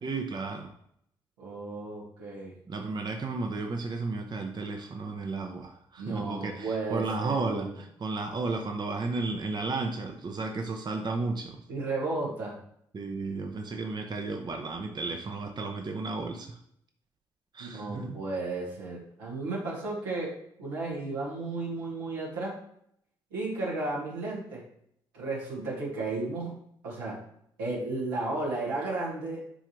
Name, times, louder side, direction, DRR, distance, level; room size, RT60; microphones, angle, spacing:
voice 1, 0.0-0.7 2.7-11.6 12.9-16.6 17.5-18.2, right 3 dB, 40° right, 3 dB, 0.8 m, -33 dB
voice 2, 1.4-2.6 6.0-7.7 11.7-12.6 17.6-22.6 23.3-24.7 25.1-26.5 26.8-27.2 27.6-29.4, right 2 dB, 85° right, -6 dB, 2.0 m, -34 dB
9.9 x 3.3 x 3.2 m, 0.70 s
hypercardioid pair, 45°, 11 cm